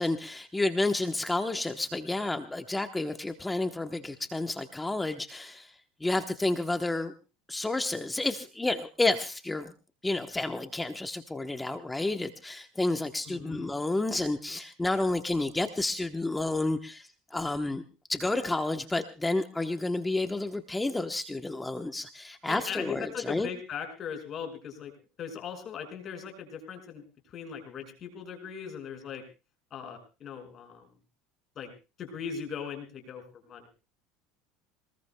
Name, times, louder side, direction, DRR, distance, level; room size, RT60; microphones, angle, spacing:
voice 1, 0.0-5.7 6.0-7.1 7.5-9.7 10.0-17.8 18.1-23.5, left 2 dB, 10° left, 6 dB, 1.0 m, -30 dB
voice 2, 13.3-13.7 22.5-24.9 25.2-29.2 29.7-30.9 31.6-31.7 32.0-33.7, left 7 dB, 35° left, 4 dB, 5.5 m, -39 dB
25.5 x 20.0 x 2.2 m, 0.32 s
supercardioid pair, 130°, 0 cm